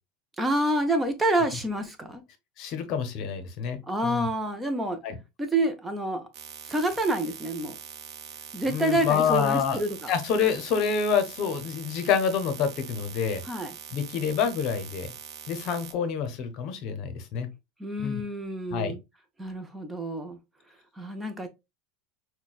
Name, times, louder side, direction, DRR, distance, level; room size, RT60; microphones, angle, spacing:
voice 1, 0.4-2.2 3.9-5.0 5.4-6.3 6.7-7.8 8.5-10.1 13.4-13.7 17.8-19.0 19.4-20.4 21.0-21.5, right 1 dB, 10° right, 0.6 m, -28 dB
voice 2, 2.6-4.3 5.0-5.2 8.6-9.8 10.1-13.4 13.9-15.1 15.5-17.5 18.0-18.2 18.7-18.9, left 7 dB, 50° left, 0.8 m, -27 dB
sound 1, 6.3-15.9, right 8 dB, 50° right, 0.7 m, -43 dB
5.9 x 2.2 x 2.3 m
supercardioid pair, 130°, 0 cm